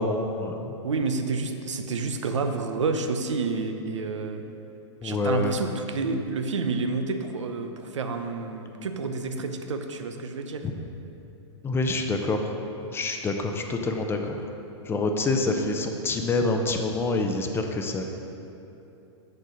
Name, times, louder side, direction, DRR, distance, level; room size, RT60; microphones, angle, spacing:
voice 1, 0.0-0.7 5.0-5.5 11.6-12.5 12.9-14.4 14.8-18.0, left 2 dB, 15° left, 4 dB, 0.6 m, -26 dB
voice 2, 0.8-4.4 5.0-10.7, right 4 dB, 85° right, 6 dB, 0.7 m, -29 dB
6.6 x 6.5 x 4.9 m, 2.9 s
hypercardioid pair, 120°, 15 cm